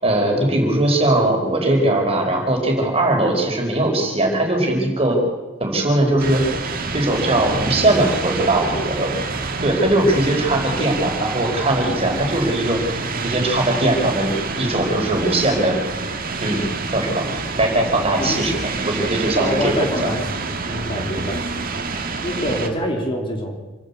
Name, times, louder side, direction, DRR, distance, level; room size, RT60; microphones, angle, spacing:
voice 1, 0.0-5.2 5.6-6.4 6.9-9.1 9.6-12.8 13.2-14.3 14.6-15.8 16.4-16.6 16.9-17.2 17.6-18.6 18.8-20.1 21.0-21.3, right 1 dB, 30° right, 2 dB, 4.6 m, -20 dB
sound 1, 6.2-22.7, right 3 dB, 45° right, 2.0 m, -27 dB
voice 2, 19.4-20.4 20.7-21.4 22.2-23.6, equal, 25° left, 1 dB, 3.4 m, -25 dB
27.5 x 11.5 x 8.4 m, 1.2 s
head